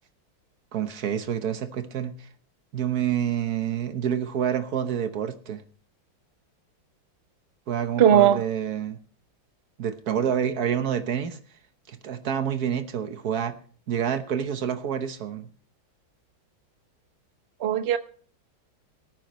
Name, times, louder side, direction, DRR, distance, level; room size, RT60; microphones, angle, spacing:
voice 1, 0.7-2.3 2.7-5.6 7.7-9.0 9.8-11.4 11.9-13.5 13.9-15.5, right 9 dB, 55° right, 1.4 m, -28 dB
voice 2, 8.0-8.4 17.6-18.0, right 9 dB, 85° right, 0.5 m, -18 dB
22.0 x 9.2 x 3.1 m
omnidirectional pair, 2.3 m